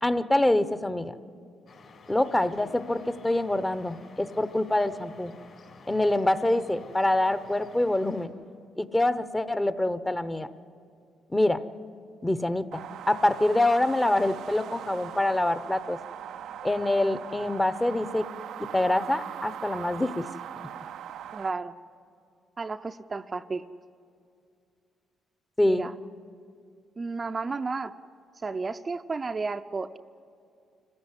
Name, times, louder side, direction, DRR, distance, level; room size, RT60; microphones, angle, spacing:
voice 1, 0.0-1.1 2.1-5.3 5.9-8.3 8.8-10.5 11.3-11.6 12.2-12.8 13.1-16.0 16.6-18.3 18.7-20.3 25.6-25.9, left 1 dB, 15° left, 13 dB, 0.8 m, -25 dB
sound 1, 1.7-8.3, left 4 dB, 60° left, 4.3 m, -51 dB
sound 2, 12.7-21.5, right 10 dB, 75° right, 0.5 m, -40 dB
voice 2, 21.3-21.7 22.6-23.6 25.6-25.9 27.0-27.9 28.4-30.0, right 4 dB, 30° right, 7 dB, 0.5 m, -32 dB
26.0 x 15.0 x 9.9 m, 2.5 s
cardioid pair, 90°, 0 cm